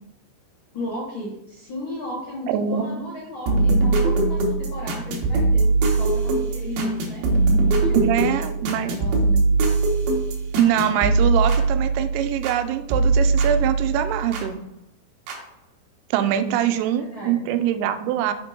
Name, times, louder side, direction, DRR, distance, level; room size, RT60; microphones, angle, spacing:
voice 1, 0.7-7.2 7.7-9.4 16.4-17.4, left 1 dB, 70° left, -5 dB, 1.2 m, -35 dB
voice 2, 2.5-2.9 7.9-9.0 10.6-14.6 16.1-18.3, right 10 dB, 85° right, 9 dB, 2.9 m, -23 dB
sound 1, 3.5-12.6 12.9-14.5 15.3-15.4, right 3 dB, 70° right, 2.6 m, -21 dB
6.8 x 4.4 x 4.3 m, 0.82 s
omnidirectional pair, 5.1 m